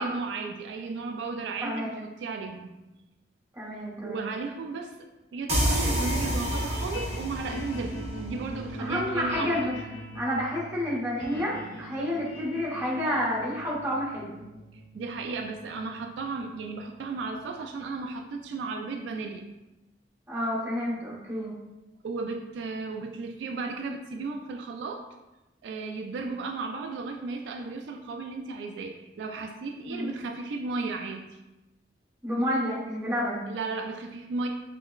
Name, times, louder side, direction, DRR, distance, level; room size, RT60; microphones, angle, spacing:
voice 1, 0.0-2.8 4.0-4.9 5.3-9.6 14.7-19.5 22.0-25.0 25.6-31.4 33.5-34.5, right 3 dB, 80° right, 4 dB, 0.3 m, -35 dB
voice 2, 1.6-2.0 3.6-4.3 8.8-9.7 10.1-14.4 20.3-21.6 29.9-30.1 32.2-33.4, equal, 15° right, -6 dB, 1.0 m, -29 dB
sound 1, 5.5-17.8, equal, 30° left, 0.6 m, -42 dB
sound 2, 5.5-9.0, equal, 35° right, 0.7 m, -29 dB
5.5 x 2.1 x 2.3 m, 1.0 s
head